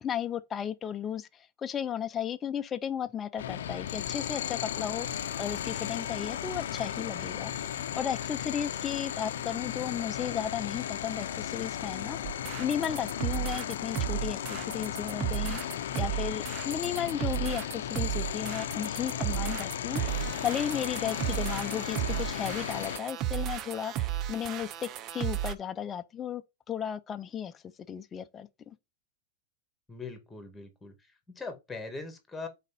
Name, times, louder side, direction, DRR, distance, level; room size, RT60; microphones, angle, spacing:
voice 1, 0.0-1.3 1.6-7.5 7.9-12.2 12.6-15.6 16.0-20.0 20.4-26.4 26.7-27.5 27.9-28.7, left 9 dB, 25° left, 0.5 m, -34 dB
sound 1, 3.4-23.0, left 10 dB, 80° left, 0.6 m, -35 dB
sound 2, 12.2-25.5, right 13 dB, 40° right, 0.6 m, -34 dB
voice 2, 29.9-30.9 31.3-32.5, left 4 dB, 10° left, 1.7 m, -41 dB
4.1 x 4.1 x 5.6 m
hypercardioid pair, 115°, 0 cm